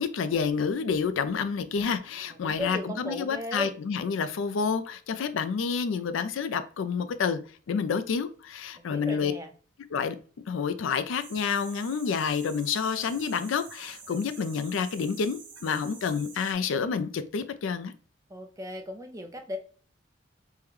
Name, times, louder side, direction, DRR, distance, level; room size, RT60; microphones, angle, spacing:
voice 1, 0.0-7.4 7.7-9.3 9.9-10.2 10.5-17.9, left 6 dB, 80° left, 0.4 m, -29 dB
voice 2, 2.4-3.7 8.9-9.5 18.3-19.6, left 1 dB, 15° right, 0.4 m, -36 dB
sound 1, 11.2-16.5, right 5 dB, 65° right, 0.8 m, -48 dB
3.6 x 2.2 x 3.0 m
head